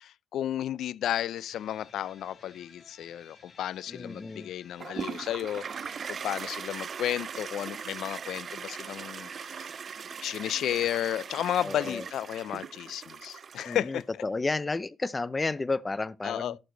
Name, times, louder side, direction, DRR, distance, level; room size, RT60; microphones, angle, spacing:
voice 1, 0.0-9.7 10.2-14.0 16.2-16.6, left 11 dB, 75° left, 0.5 m, -33 dB
sound 1, 1.5-6.5, left 4 dB, 45° left, 3.5 m, -57 dB
voice 2, 3.9-4.5 11.6-12.0 13.6-16.6, left 3 dB, 20° left, 0.7 m, -32 dB
Toilet flush, 4.8-14.0, right 6 dB, 45° right, 0.4 m, -39 dB
11.5 x 6.7 x 4.0 m
cardioid pair, 90°, 0 cm